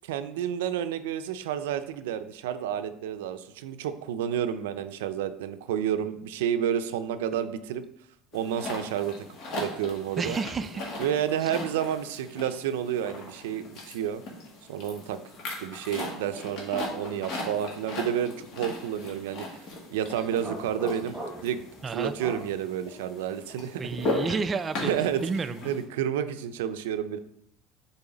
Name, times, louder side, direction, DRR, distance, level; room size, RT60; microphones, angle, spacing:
voice 1, 0.0-7.8 8.3-9.1 9.6-10.4 11.0-14.2 14.7-15.2 15.6-19.5 19.9-21.2 21.4-21.7 21.9-24.1 24.9-25.2 25.6-27.2, right 9 dB, 90° right, 10 dB, 0.4 m, -30 dB
sound 1, 8.3-25.8, left 2 dB, 55° left, 1.9 m, -38 dB
voice 2, 10.2-10.9 11.4-11.5 21.8-22.1 23.8-24.9 25.2-25.6, right 4 dB, 25° right, 10 dB, 0.3 m, -30 dB
sound 2, 20.4-21.6 22.2-22.5, equal, 5° right, 1.7 m, -37 dB
7.0 x 4.1 x 3.9 m, 0.73 s
supercardioid pair, 110°, 0 cm